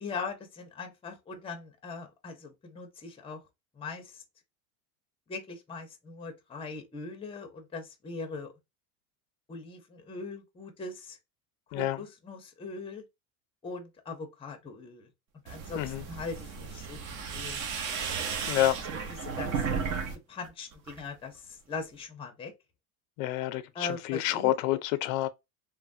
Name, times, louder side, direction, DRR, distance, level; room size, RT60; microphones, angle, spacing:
voice 1, 0.0-3.4 3.8-4.2 5.3-8.5 9.5-11.2 11.7-13.0 13.6-15.1 15.4-17.8 18.9-19.9 20.3-22.5 23.7-24.5, left 4 dB, 15° left, 0.6 m, -41 dB
sound 1, 15.5-20.1 20.4-21.1, right 6 dB, 45° right, 0.7 m, -34 dB
voice 2, 18.5-18.8 23.2-25.3, left 14 dB, 75° left, 0.5 m, -28 dB
3.1 x 2.1 x 2.5 m
supercardioid pair, 130°, 41 cm